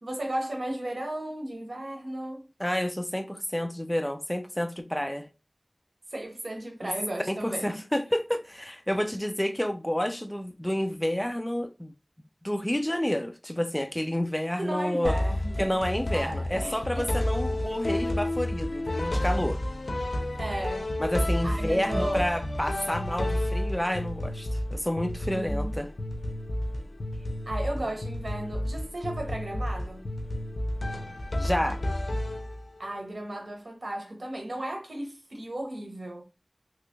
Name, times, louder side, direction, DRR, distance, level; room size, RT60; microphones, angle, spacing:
voice 1, 0.0-2.4 6.1-7.8 14.6-15.8 16.1-17.1 20.4-20.9 21.4-22.3 25.3-25.8 27.5-30.1 32.8-36.2, right 1 dB, 80° right, 1.0 m, -35 dB
voice 2, 2.6-5.3 6.8-6.9 7.3-11.9 12.4-15.1 15.6-19.6 21.0-25.9 31.4-31.8, equal, 10° left, 0.3 m, -29 dB
sound 1, 15.0-32.9, left 1 dB, 90° left, 0.5 m, -31 dB
sound 2, 16.4-20.5, equal, 40° right, 1.4 m, -52 dB
3.1 x 2.9 x 2.6 m
wide cardioid pair, 40°, 0 cm